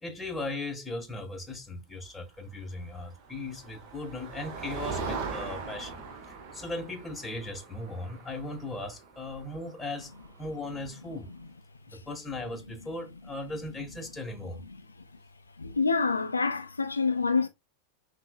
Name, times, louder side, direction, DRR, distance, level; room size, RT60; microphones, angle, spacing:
voice 1, 0.0-6.0 6.3-10.1 10.4-11.3 11.9-14.6, left 2 dB, 10° left, 0.9 m, -38 dB
Motor vehicle (road), 2.9-10.7, right 4 dB, 40° right, 0.8 m, -40 dB
voice 2, 15.6-17.5, left 4 dB, 80° left, 0.3 m, -26 dB
5.6 x 2.0 x 2.3 m
figure-of-eight pair, 90°, 0 cm